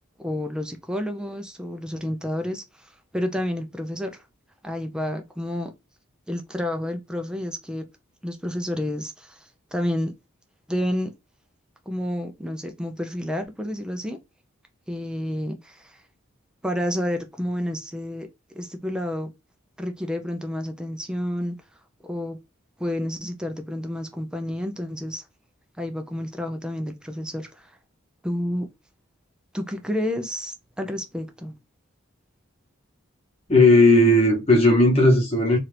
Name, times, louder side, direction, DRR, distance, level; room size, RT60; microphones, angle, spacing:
voice 1, 0.2-4.2 4.6-5.7 6.3-7.9 8.2-10.1 10.7-11.1 11.9-14.2 14.9-16.0 16.6-18.3 18.5-19.3 19.8-21.6 22.0-22.4 22.8-25.2 25.8-27.8 28.2-28.7 29.5-31.5, left 1 dB, 5° right, 0.4 m, -30 dB
voice 2, 33.5-35.6, left 1 dB, 30° left, 1.1 m, -16 dB
2.8 x 2.4 x 3.2 m
head